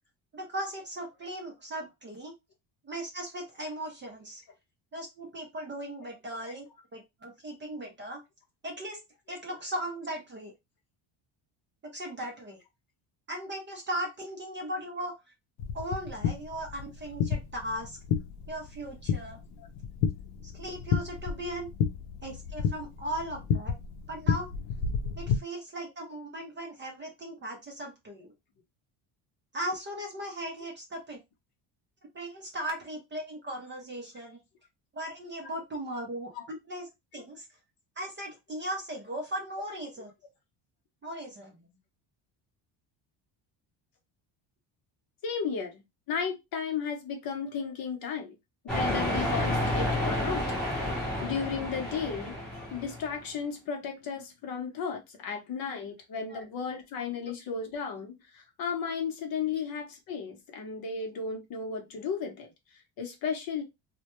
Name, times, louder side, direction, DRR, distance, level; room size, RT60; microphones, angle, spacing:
voice 1, 0.3-2.3 2.8-4.4 4.9-6.7 6.9-8.2 8.6-9.0 9.3-10.5 11.8-12.6 13.3-15.1 15.7-18.0 18.5-19.4 20.5-21.7 22.2-23.8 24.1-24.5 25.2-28.3 29.5-31.2 32.1-34.4 34.9-36.9 37.1-37.5 38.0-40.1 41.0-41.7 56.3-56.5, right 1 dB, 25° right, 0.5 m, -37 dB
sound 1, 15.6-25.4, left 7 dB, 90° left, 0.6 m, -32 dB
voice 2, 45.2-48.4 48.6-50.4 50.9-52.4 52.7-63.6, left 6 dB, 50° left, 0.7 m, -34 dB
sound 2, 48.7-53.2, left 1 dB, ahead, 0.8 m, -30 dB
2.2 x 2.1 x 2.9 m
cardioid pair, 150°, 47 cm